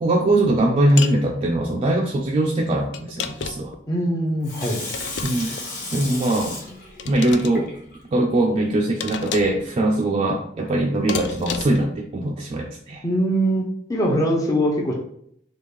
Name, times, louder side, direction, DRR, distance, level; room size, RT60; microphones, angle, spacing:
voice 1, 0.0-3.7 5.2-5.6 5.9-6.5 7.1-7.7 8.1-13.0, right 1 dB, 30° right, 0 dB, 0.3 m, -21 dB
Dropping metal objects, 1.0-1.2 2.9-3.8 4.9-5.7 7.0-7.5 9.0-9.6 11.1-11.9, left 7 dB, 75° left, 0.3 m, -31 dB
voice 2, 3.9-4.8 13.0-13.6 13.9-14.9, equal, 20° left, -1 dB, 0.5 m, -21 dB
Water tap faucet / Sink (filling or washing), 4.4-8.2 8.7-8.8, left 2 dB, 45° left, 0.9 m, -34 dB
3.5 x 2.3 x 3.2 m, 0.71 s
head